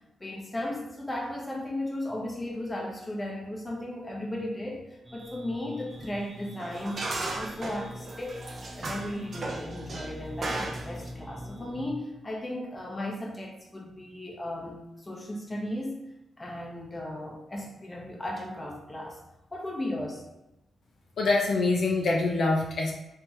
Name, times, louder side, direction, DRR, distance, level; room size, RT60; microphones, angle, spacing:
voice 1, 0.2-8.4 8.8-16.1 16.4-19.2 19.5-20.2, left 1 dB, 25° left, -1 dB, 0.9 m, -36 dB
sound 1, 5.0-11.9, equal, 15° right, 0.8 m, -43 dB
sound 2, 6.0-6.1 6.6-11.1, right 2 dB, 50° right, 0.6 m, -36 dB
voice 2, 21.2-22.9, left 3 dB, 65° left, -2 dB, 0.6 m, -25 dB
3.4 x 3.3 x 3.0 m, 0.93 s
cardioid pair, 75°, 0 cm